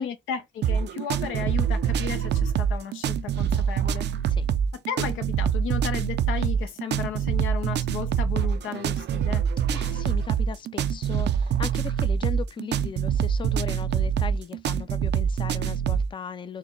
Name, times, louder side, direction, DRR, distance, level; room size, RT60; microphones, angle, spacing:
voice 1, 0.0-4.1 4.7-9.4, left 8 dB, 90° left, 0.9 m, -34 dB
sound 1, 0.6-16.1, right 8 dB, 60° right, 0.5 m, -25 dB
voice 2, 9.7-16.6, left 6 dB, 25° left, 0.5 m, -37 dB
4.2 x 2.2 x 3.8 m
cardioid pair, 90°, 20 cm